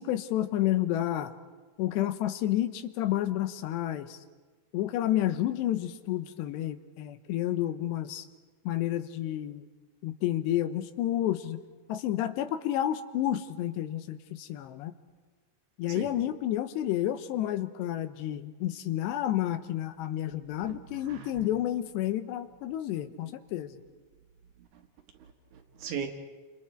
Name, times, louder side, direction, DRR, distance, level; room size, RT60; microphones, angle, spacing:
voice 1, 0.0-1.3 1.8-4.2 4.7-8.3 8.6-9.7 10.0-11.6 11.9-14.9 15.8-23.8, left 13 dB, 80° left, 3.1 m, -30 dB
voice 2, 20.4-21.4 23.2-23.3 24.6-24.8 25.2-26.1, right 7 dB, 60° right, 2.3 m, -40 dB
29.5 x 28.0 x 4.5 m
omnidirectional pair, 5.0 m